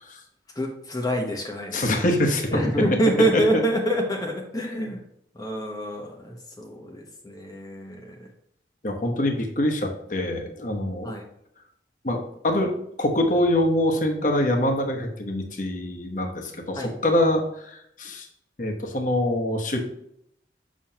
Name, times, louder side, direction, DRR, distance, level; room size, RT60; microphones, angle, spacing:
voice 1, 0.5-2.0 2.5-5.0 5.3-8.3 11.0-11.3 16.7-16.9, right 1 dB, 20° left, 1 dB, 0.9 m, -26 dB
voice 2, 1.7-2.6 3.3-3.6 8.8-11.1 12.0-12.7 13.0-18.3 18.6-19.8, left 1 dB, 45° left, 2 dB, 1.1 m, -24 dB
7.3 x 6.2 x 2.9 m, 0.73 s
head